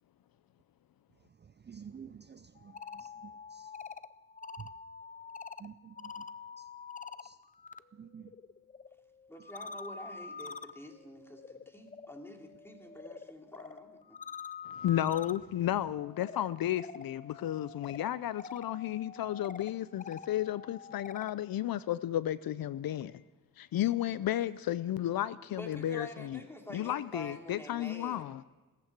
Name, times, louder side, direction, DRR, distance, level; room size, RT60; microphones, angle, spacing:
voice 1, 1.4-3.7 4.6-4.7 5.6-6.3 6.6-6.7 7.2-7.4 7.9-8.3, right 7 dB, 30° right, 0.5 m, -50 dB
sound 1, 2.6-7.8 8.1-21.4, left 5 dB, 20° left, 0.5 m, -47 dB
voice 2, 9.3-14.2 25.5-28.2, left 1 dB, 5° left, 2.7 m, -48 dB
voice 3, 14.7-23.2 23.6-26.4 26.7-28.4, left 12 dB, 70° left, 0.5 m, -33 dB
17.0 x 14.0 x 6.0 m
cardioid pair, 90°, 36 cm